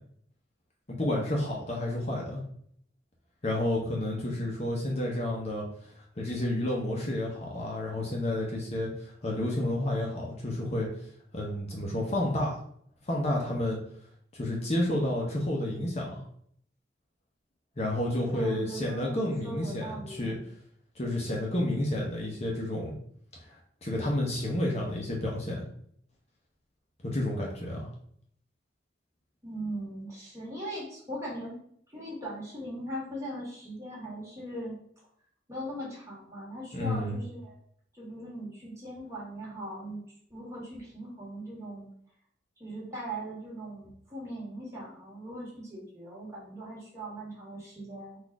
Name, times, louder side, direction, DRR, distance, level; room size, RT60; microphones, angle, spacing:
voice 1, 1.0-2.4 3.4-5.6 6.2-10.9 11.3-12.6 13.1-13.8 14.3-16.2 17.8-20.4 21.0-23.0 23.5-25.6 27.0-27.9 36.7-37.2, left 1 dB, 35° left, -2 dB, 0.8 m, -30 dB
voice 2, 18.2-20.4 29.4-31.6 31.9-34.8 35.5-37.6 37.9-40.0 40.3-41.9 42.6-48.2, right 1 dB, 15° right, -6 dB, 1.8 m, -39 dB
4.1 x 2.6 x 4.6 m, 0.65 s
head